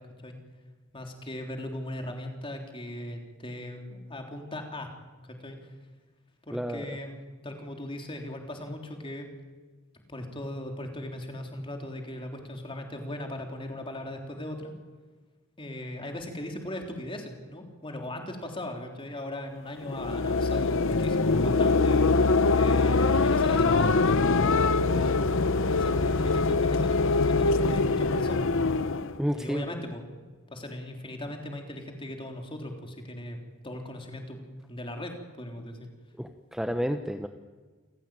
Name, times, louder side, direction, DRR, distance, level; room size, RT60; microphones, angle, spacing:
voice 1, 0.9-4.9 5.2-5.7 6.5-7.2 7.4-9.3 10.1-14.7 15.6-22.0 22.5-28.5 29.3-30.0 30.5-34.4 34.7-35.9, left 1 dB, 25° left, 3 dB, 3.6 m, -38 dB
voice 2, 6.5-6.8 29.2-29.6 36.2-37.3, equal, ahead, 6 dB, 0.9 m, -30 dB
sound 1, 19.8-29.2, left 3 dB, 60° left, 0.8 m, -23 dB
28.5 x 16.0 x 9.0 m, 1.4 s
head